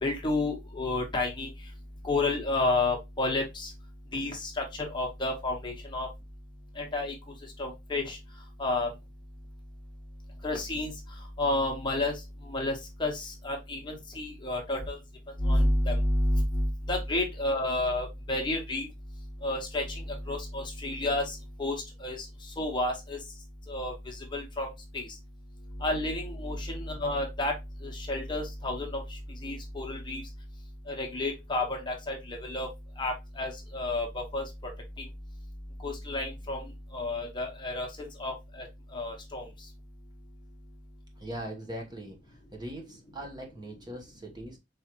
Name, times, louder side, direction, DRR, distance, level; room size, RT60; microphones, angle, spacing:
voice 1, 0.0-1.5 2.0-3.7 4.1-6.1 6.8-7.1 7.6-8.2 8.6-8.9 10.4-10.9 11.4-12.2 12.5-12.7 13.0-15.0 15.4-18.9 19.4-19.8 20.3-22.3 22.6-23.2 23.7-24.7 24.9-25.1 25.8-27.5 27.8-29.0 29.4-30.2 30.9-32.7 33.0-34.4 35.0-35.1 35.8-36.6 36.9-37.9 38.2-38.7 38.9-39.5, left 2 dB, 25° left, 1.1 m, -30 dB
voice 2, 41.2-44.6, right 1 dB, 25° right, 1.0 m, -41 dB
4.7 x 3.2 x 2.9 m
head